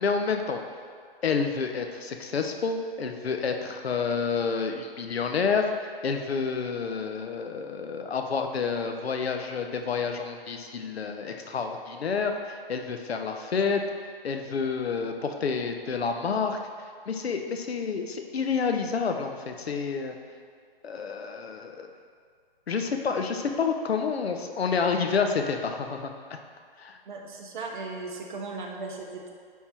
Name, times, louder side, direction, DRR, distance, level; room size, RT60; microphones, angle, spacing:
voice 1, 0.0-0.6 1.2-5.7 6.0-13.8 14.2-16.6 17.1-20.2 20.8-21.9 22.7-26.4 26.8-26.9, left 5 dB, 90° left, 5 dB, 0.9 m, -29 dB
voice 2, 27.1-29.3, right 3 dB, 55° right, 1 dB, 1.1 m, -37 dB
9.4 x 3.7 x 4.3 m, 2.1 s
hypercardioid pair, 160°, 30 cm